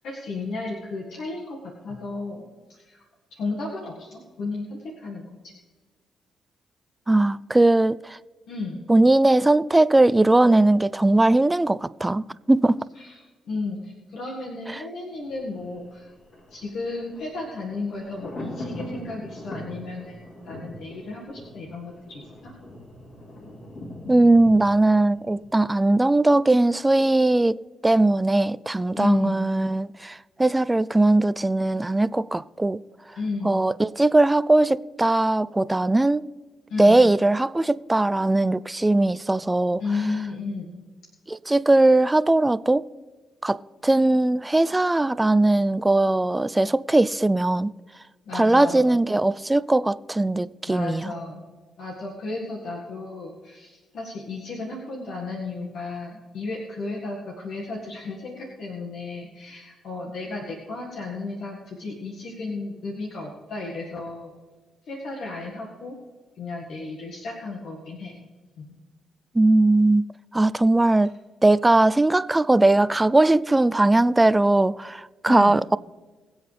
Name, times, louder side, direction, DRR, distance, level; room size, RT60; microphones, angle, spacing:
voice 1, 0.0-2.4 2.7-3.0 3.3-5.5 8.5-8.8 13.0-13.2 13.4-16.1 16.5-22.5 29.0-29.4 33.1-33.5 36.7-37.0 39.8-40.7 48.2-49.0 50.7-51.4 51.8-64.3 64.9-66.0 66.4-68.1 68.6-68.7 75.2-75.6, left 3 dB, 75° left, 1.8 m, -33 dB
voice 2, 7.1-8.2 8.9-12.8 14.7-14.8 24.1-27.6 27.8-32.8 33.4-36.2 36.8-39.8 41.3-42.9 43.4-47.7 48.3-51.1 69.3-71.1 71.4-75.8, right 2 dB, 15° right, 0.4 m, -19 dB
Thunder, 15.2-26.2 26.5-26.6, left 1 dB, 60° left, 3.7 m, -41 dB
22.0 x 8.1 x 3.4 m
cardioid pair, 75°, 0 cm